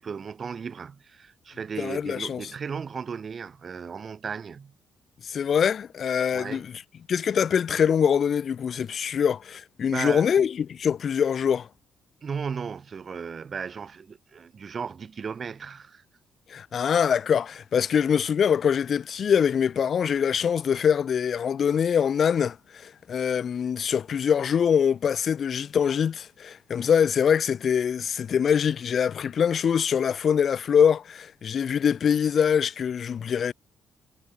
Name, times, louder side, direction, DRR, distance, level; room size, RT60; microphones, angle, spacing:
voice 1, 0.0-4.7 6.3-6.6 9.9-10.3 12.2-16.0, right 6 dB, 45° right, 0.6 m, -35 dB
voice 2, 1.8-2.4 5.2-6.7 7.1-11.7 16.5-33.5, left 7 dB, 55° left, 0.4 m, -24 dB
cardioid pair, 90°, 0 cm